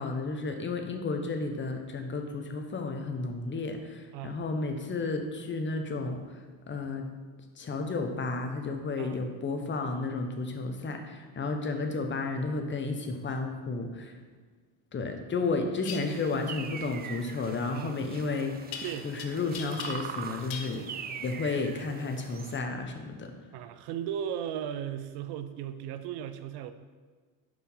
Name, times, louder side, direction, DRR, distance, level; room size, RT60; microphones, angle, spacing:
voice 1, 0.0-7.1 7.6-14.2 14.9-20.8 21.2-23.3, left 3 dB, 25° left, 5 dB, 0.9 m, -32 dB
sound 1, 15.8-16.0 18.7-19.2 19.5-20.2 20.5-20.7, left 8 dB, 75° left, 0.8 m, -39 dB
sound 2, 16.0-22.6, right 7 dB, 25° right, 0.3 m, -42 dB
voice 2, 23.5-26.7, right 9 dB, 65° right, 11 dB, 0.6 m, -36 dB
5.0 x 4.9 x 5.5 m, 1.4 s
supercardioid pair, 90°, 42 cm